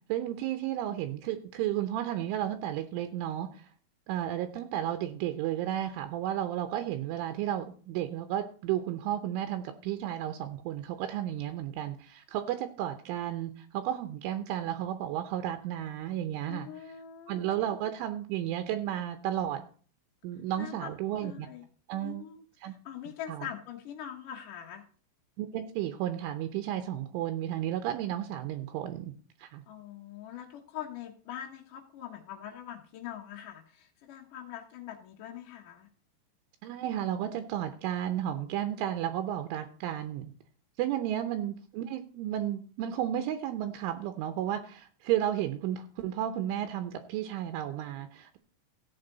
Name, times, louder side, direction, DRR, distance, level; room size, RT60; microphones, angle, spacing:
voice 1, 0.1-3.7 4.1-16.7 17.3-19.6 20.2-21.5 21.9-22.2 22.6-22.7 23.3-23.5 25.4-29.1 29.4-29.6 36.6-40.3 40.8-48.4, right 11 dB, 80° right, 8 dB, 3.3 m, -33 dB
voice 2, 16.5-17.4 20.6-21.6 22.0-24.8 29.7-35.9 41.2-41.3, left 10 dB, 70° left, 1 dB, 2.0 m, -43 dB
14.5 x 8.6 x 4.0 m, 0.43 s
omnidirectional pair, 5.7 m